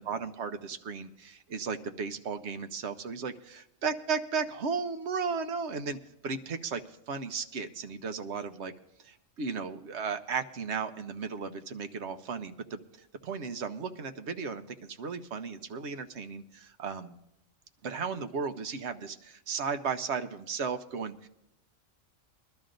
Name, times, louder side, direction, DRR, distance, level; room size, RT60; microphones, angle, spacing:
voice 1, 0.0-8.7 9.0-17.2 17.8-21.3, right 5 dB, 60° right, 9 dB, 1.0 m, -35 dB
22.0 x 12.5 x 2.6 m, 0.85 s
omnidirectional pair, 1.4 m